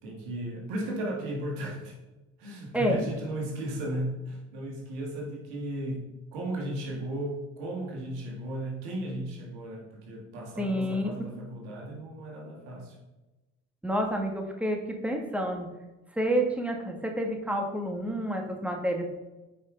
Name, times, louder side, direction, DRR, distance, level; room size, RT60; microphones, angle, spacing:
voice 1, 0.0-2.0 2.4-6.1 6.3-13.0, right 1 dB, 90° right, -1 dB, 2.1 m, -35 dB
voice 2, 2.7-3.1 10.6-11.3 13.8-15.7 16.1-19.0, equal, 5° right, 2 dB, 1.9 m, -29 dB
9.2 x 5.2 x 4.0 m, 1.1 s
supercardioid pair, 60°, 32 cm